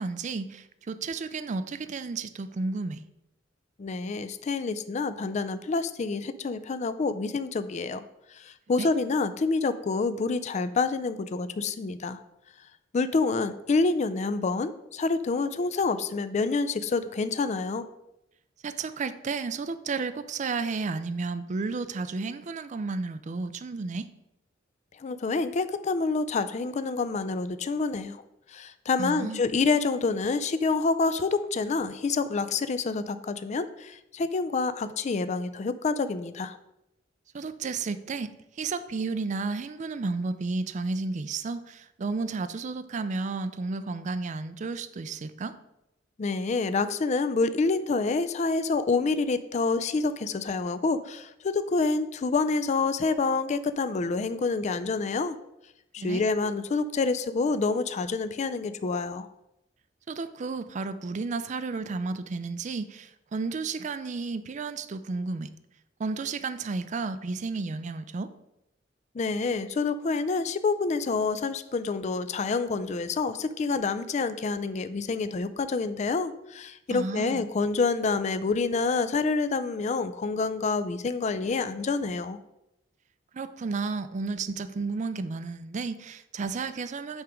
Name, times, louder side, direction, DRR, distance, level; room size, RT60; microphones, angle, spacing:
voice 1, 0.0-3.0 8.8-8.9 18.6-24.1 29.0-29.4 37.3-45.6 56.0-56.2 60.1-65.5 66.0-68.3 76.9-77.4 83.3-87.2, right 4 dB, 40° right, 12 dB, 0.4 m, -32 dB
voice 2, 3.8-8.0 8.3-12.2 12.9-17.9 25.0-28.2 28.5-36.6 46.2-55.4 55.9-59.3 69.1-82.4, left 4 dB, 40° left, 12 dB, 0.4 m, -27 dB
8.7 x 3.5 x 5.0 m, 0.86 s
head